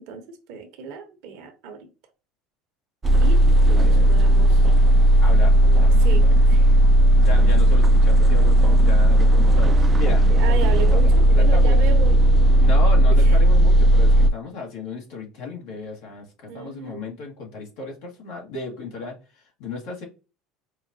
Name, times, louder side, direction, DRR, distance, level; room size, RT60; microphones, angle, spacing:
voice 1, 0.0-1.9 3.2-3.4 3.7-4.6 6.0-6.8 10.3-12.2 13.1-13.4 16.5-17.0, right 6 dB, 70° right, 0.9 m, -34 dB
sound 1, 3.0-14.3, right 1 dB, 25° right, 0.4 m, -15 dB
voice 2, 3.7-4.3 5.2-6.0 7.2-10.3 10.8-12.1 12.6-19.1 19.6-20.0, left 3 dB, 70° left, 1.5 m, -34 dB
4.7 x 2.3 x 2.6 m
hypercardioid pair, 80°, 0 cm